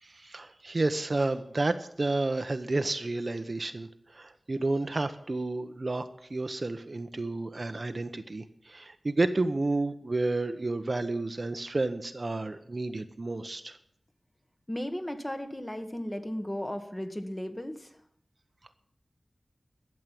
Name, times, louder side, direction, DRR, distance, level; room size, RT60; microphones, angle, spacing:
voice 1, 0.0-13.8, right 2 dB, 50° right, 9 dB, 0.9 m, -31 dB
voice 2, 14.7-17.9, left 1 dB, 20° left, 6 dB, 1.6 m, -35 dB
12.5 x 7.6 x 9.3 m, 0.68 s
wide cardioid pair, 55°, 0 cm